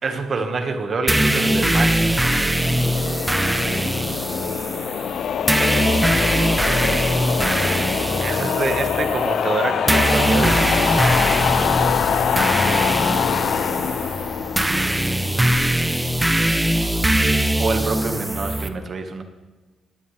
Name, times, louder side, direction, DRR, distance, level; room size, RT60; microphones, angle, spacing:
voice 1, 0.0-2.2 8.2-10.8 17.6-19.2, right 4 dB, 45° right, 6 dB, 1.7 m, -26 dB
sound 1, 1.1-18.7, right 1 dB, 10° right, 0.8 m, -21 dB
sound 2, 1.4-15.7, left 8 dB, 65° left, 0.6 m, -24 dB
voice 2, 2.9-4.0 5.2-5.5 13.6-14.4, left 3 dB, 85° left, 2 dB, 2.4 m, -39 dB
18.0 x 11.0 x 3.4 m, 1.2 s
cardioid pair, 100°, 0 cm